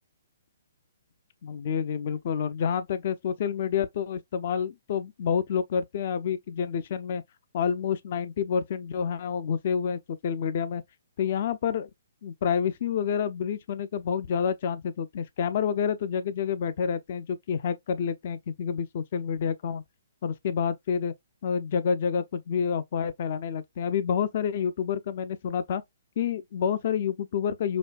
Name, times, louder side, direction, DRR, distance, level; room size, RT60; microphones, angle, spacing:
voice 1, 1.4-7.2 7.5-10.8 11.2-11.9 12.2-19.8 20.2-21.1 21.4-25.8 26.2-27.8, left 7 dB, 50° left, 0.5 m, -28 dB
5.1 x 2.2 x 2.3 m
figure-of-eight pair, 130°, 0 cm